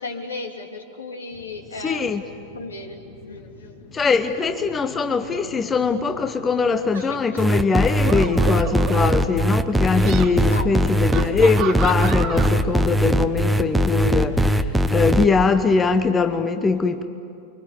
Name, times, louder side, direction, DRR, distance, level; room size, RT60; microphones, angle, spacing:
voice 1, 0.0-2.2 2.5-3.4 6.9-7.4 10.5-10.9, left 3 dB, 70° left, 5 dB, 2.7 m, -35 dB
sound 1, 1.3-7.2, left 3 dB, 50° left, 3.1 m, -45 dB
voice 2, 1.8-2.2 3.9-17.0, left 4 dB, 20° left, 9 dB, 1.0 m, -21 dB
sound 2, 6.9-7.2 8.0-9.4 9.9-10.3 11.1-12.5, right 9 dB, 35° right, 1.9 m, -32 dB
sound 3, 7.4-15.2, equal, 5° right, 1.1 m, -20 dB
29.5 x 24.0 x 8.4 m, 2.6 s
figure-of-eight pair, 90°, 0 cm